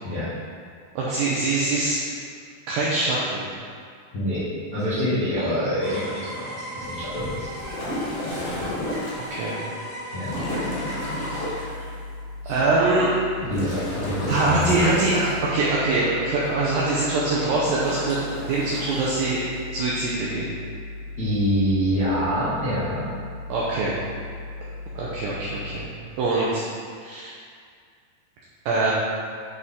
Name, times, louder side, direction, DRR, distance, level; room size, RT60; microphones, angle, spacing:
voice 1, 1.0-2.1 2.7-3.5 5.4-5.5 9.3-9.6 11.2-11.8 12.5-13.1 14.3-19.4 19.7-20.5 23.5-24.0 25.0-25.9 26.2-26.6 27.0-27.4 28.7-28.9, right 3 dB, 90° right, -6 dB, 2.0 m, -23 dB
voice 2, 4.1-7.7 10.1-10.3 12.4-12.6 13.5-14.9 21.2-23.0, equal, 80° left, -13 dB, 0.9 m, -26 dB
sound 1, 5.8-11.5, right 1 dB, 50° right, 2.3 m, -36 dB
sound 2, 6.8-9.4 10.2-11.7 13.2-15.5 17.5-18.9, left 1 dB, 65° left, 3.3 m, -32 dB
sound 3, 10.3-25.8, left 3 dB, 75° right, 2.3 m, -38 dB
11.0 x 4.1 x 3.6 m, 2.2 s
omnidirectional pair, 5.1 m